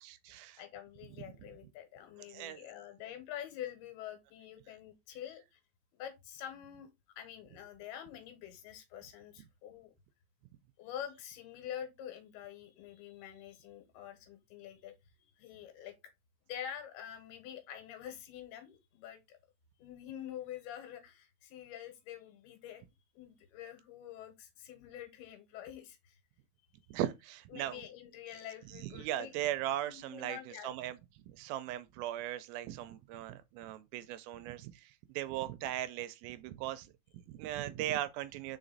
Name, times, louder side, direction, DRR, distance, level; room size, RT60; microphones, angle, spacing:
voice 1, 0.0-0.6 2.3-2.6 26.9-27.8 28.8-31.0 31.3-38.6, right 13 dB, 80° right, 2.3 m, -38 dB
voice 2, 0.6-5.6 5.9-6.9 7.2-9.9 10.8-14.9 15.2-16.0 16.5-19.4 19.8-22.8 23.1-26.2 27.5-29.3 29.9-30.7, left 10 dB, 90° left, 3.2 m, -46 dB
5.0 x 4.9 x 4.0 m
omnidirectional pair, 4.5 m